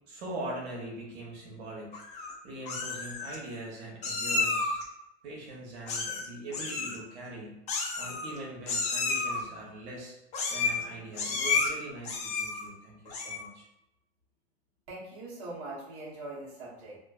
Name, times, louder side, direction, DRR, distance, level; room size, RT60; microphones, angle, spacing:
voice 1, 0.1-4.8 5.2-7.6 8.0-10.2 10.5-13.7, right 1 dB, 80° right, -3 dB, 0.9 m, -42 dB
Meow, 1.9-2.3 2.7-3.4 4.0-4.8 5.9-6.3 6.5-7.0 7.7-8.4 8.7-9.4 10.3-10.8 11.1-11.7 12.0-12.6 13.1-13.5, left 4 dB, 20° left, 0.3 m, -31 dB
voice 2, 14.9-17.0, right 2 dB, 45° right, -6 dB, 1.1 m, -42 dB
2.4 x 2.4 x 2.3 m, 0.88 s
supercardioid pair, 130°, 33 cm